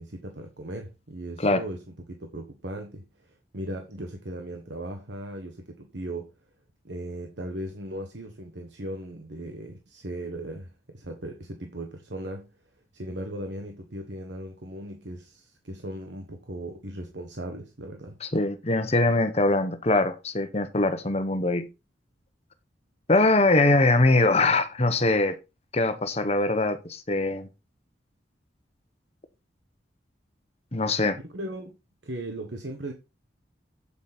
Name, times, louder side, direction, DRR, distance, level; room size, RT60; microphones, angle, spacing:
voice 1, 0.0-6.3 6.8-12.5 12.9-18.2 31.2-31.8 32.0-32.9, right 1 dB, 70° right, 1.4 m, -37 dB
voice 2, 18.2-21.7 23.1-25.4 25.7-27.5 30.7-31.2, left 2 dB, 35° left, 1.2 m, -22 dB
8.6 x 8.2 x 4.1 m
head